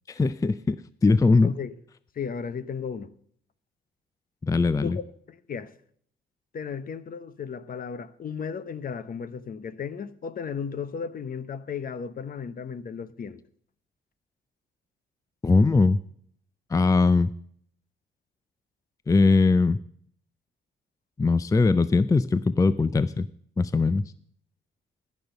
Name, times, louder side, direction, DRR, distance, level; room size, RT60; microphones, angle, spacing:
voice 1, 0.1-0.8 1.0-1.5 4.4-5.0 15.4-16.0 16.7-17.3 19.1-19.8 21.2-23.3 23.6-24.0, left 3 dB, 15° left, 0.4 m, -20 dB
voice 2, 1.4-1.7 2.1-3.1 4.8-5.7 6.5-13.4, left 6 dB, 45° left, 0.9 m, -35 dB
14.0 x 6.4 x 6.6 m
cardioid pair, 90°, 20 cm